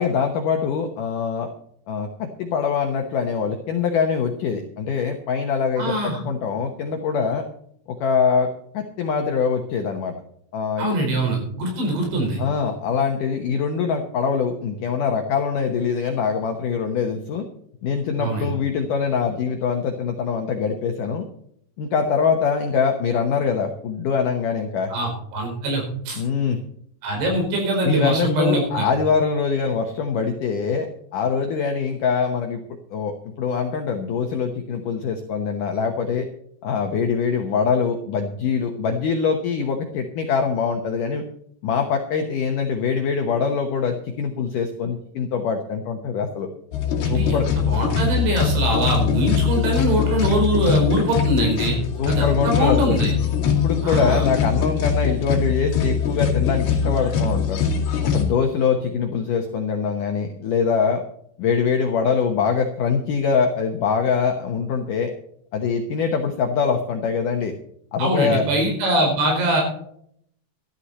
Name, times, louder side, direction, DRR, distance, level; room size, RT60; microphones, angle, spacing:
voice 1, 0.0-1.5 1.9-7.5 8.0-8.5 8.7-10.1 10.5-10.9 12.4-17.4 17.8-21.3 21.8-24.9 26.2-26.6 27.8-32.6 32.9-36.3 36.6-41.2 41.6-46.5 47.1-47.5 52.0-53.0 53.4-57.6 58.0-61.0 61.4-65.1 65.5-67.5 67.9-68.4, left 6 dB, 75° left, 4 dB, 1.9 m, -23 dB
voice 2, 5.8-6.2 10.8-12.4 18.2-18.5 24.9-26.2 27.0-28.9 47.0-47.4 47.7-51.8 52.1-53.1 53.8-54.3 68.0-69.6, right 1 dB, 75° right, 1 dB, 7.0 m, -22 dB
sound 1, 46.7-58.2, left 7 dB, 60° left, 4.3 m, -22 dB
13.0 x 13.0 x 4.3 m, 0.67 s
omnidirectional pair, 5.3 m